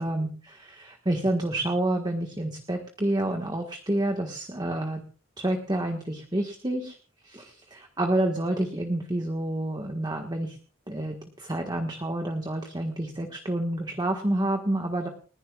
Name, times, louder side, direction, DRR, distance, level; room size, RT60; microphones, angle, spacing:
voice 1, 0.0-5.0 5.4-7.0 7.2-10.6 10.9-15.1, right 1 dB, 20° right, 3 dB, 1.5 m, -29 dB
30.0 x 11.0 x 2.4 m, 0.37 s
head